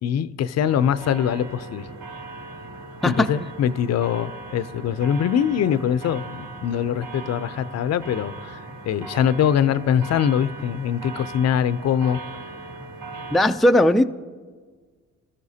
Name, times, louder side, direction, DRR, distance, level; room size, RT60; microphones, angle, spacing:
voice 1, 0.0-1.9 3.0-12.2 13.2-13.3, left 9 dB, 60° left, 15 dB, 0.5 m, -23 dB
sound 1, 0.6-13.5, right 3 dB, 70° right, 2.1 m, -39 dB
voice 2, 13.3-14.0, left 1 dB, ahead, 7 dB, 0.4 m, -17 dB
22.5 x 13.5 x 2.8 m, 1.5 s
cardioid pair, 90°, 30 cm